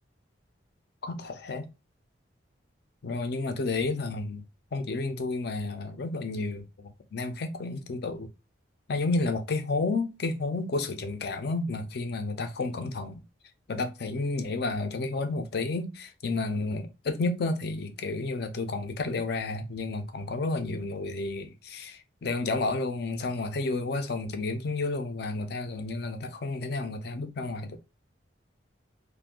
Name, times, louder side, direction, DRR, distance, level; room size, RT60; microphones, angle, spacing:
voice 1, 1.0-1.7 3.0-4.4 4.7-8.3 8.9-13.2 13.7-27.8, left 3 dB, 55° left, 0.5 m, -31 dB
2.5 x 2.2 x 3.5 m
head